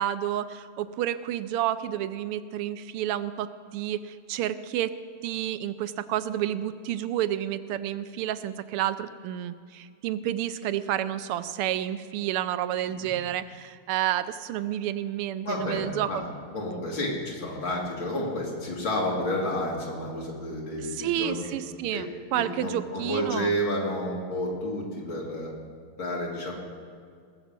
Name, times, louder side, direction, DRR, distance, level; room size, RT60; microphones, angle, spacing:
voice 1, 0.0-4.9 5.2-16.2 20.9-23.6, right 12 dB, 90° right, 13 dB, 1.5 m, -30 dB
voice 2, 15.4-16.2 16.5-21.6 21.9-22.0 22.4-25.5 26.0-26.5, left 1 dB, 65° left, -3 dB, 3.1 m, -30 dB
19.0 x 7.1 x 7.4 m, 2.1 s
omnidirectional pair, 2.4 m